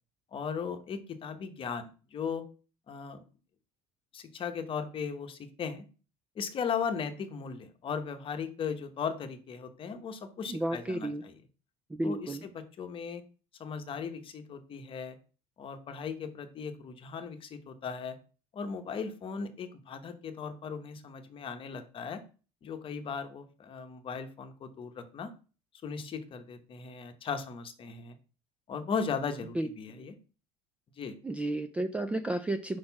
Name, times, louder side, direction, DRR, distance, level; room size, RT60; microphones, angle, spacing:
voice 1, 0.3-2.5 2.9-3.2 4.1-5.8 6.4-11.3 12.0-13.2 13.6-15.2 15.6-18.2 18.5-22.2 22.6-25.3 25.8-28.2 28.7-30.2 31.0-31.1, left 6 dB, 30° left, 8 dB, 1.0 m, -37 dB
voice 2, 10.5-11.2 11.9-12.4 29.6-29.7 31.2-32.8, right 1 dB, 5° right, 9 dB, 0.3 m, -32 dB
4.9 x 4.3 x 5.7 m, 0.36 s
cardioid pair, 140°, 17 cm